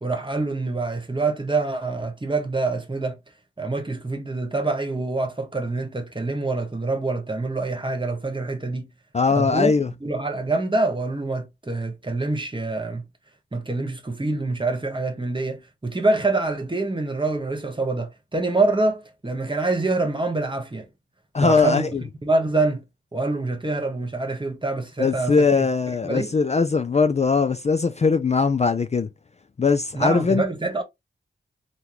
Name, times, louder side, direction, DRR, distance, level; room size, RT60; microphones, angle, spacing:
voice 1, 0.0-3.2 3.6-8.9 9.3-9.7 10.0-13.0 13.5-20.9 21.4-21.9 22.2-22.8 23.1-25.7 26.0-26.4 29.9-30.8, right 3 dB, 25° right, 1.1 m, -25 dB
voice 2, 9.1-9.9 21.3-22.0 25.0-29.1 29.6-30.4, left 4 dB, 30° left, 0.4 m, -20 dB
3.8 x 2.2 x 3.0 m
cardioid pair, 50°, 21 cm